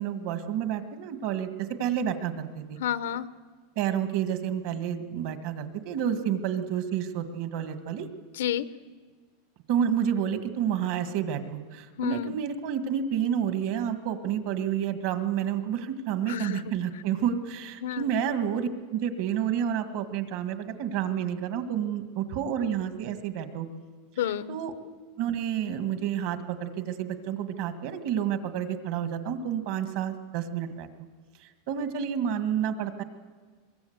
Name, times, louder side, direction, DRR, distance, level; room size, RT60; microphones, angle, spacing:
voice 1, 0.0-2.8 3.8-8.1 9.7-23.7 24.5-24.7 25.2-30.9 31.7-33.0, right 9 dB, 45° right, 8 dB, 1.7 m, -29 dB
voice 2, 2.8-3.3 8.3-8.7 12.0-12.3 16.3-16.6 17.8-18.1 24.2-24.6, left 10 dB, 90° left, 14 dB, 0.9 m, -30 dB
23.5 x 22.0 x 8.1 m, 1.5 s
supercardioid pair, 175°, 0 cm